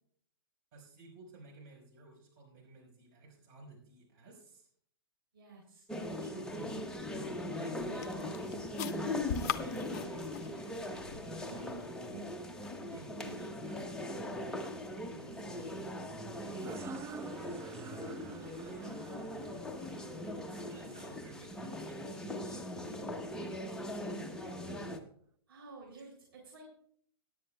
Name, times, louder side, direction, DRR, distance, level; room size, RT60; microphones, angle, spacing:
voice 1, 0.7-4.7 7.2-12.3 12.9-14.7 15.1-16.1 16.3-16.8 17.3-18.9 20.5-23.7 24.2-25.0, right 3 dB, 45° right, -1 dB, 5.0 m, -55 dB
voice 2, 5.3-6.9 25.5-26.8, right 3 dB, 70° right, -1 dB, 3.5 m, -52 dB
sound 1, 5.9-25.0, left 1 dB, 5° left, 0.9 m, -40 dB
sound 2, 6.7-11.9, left 9 dB, 45° left, 0.7 m, -43 dB
sound 3, 16.5-21.9, right 5 dB, 20° right, 0.6 m, -49 dB
17.0 x 10.5 x 2.3 m, 0.62 s
figure-of-eight pair, 115°, 13 cm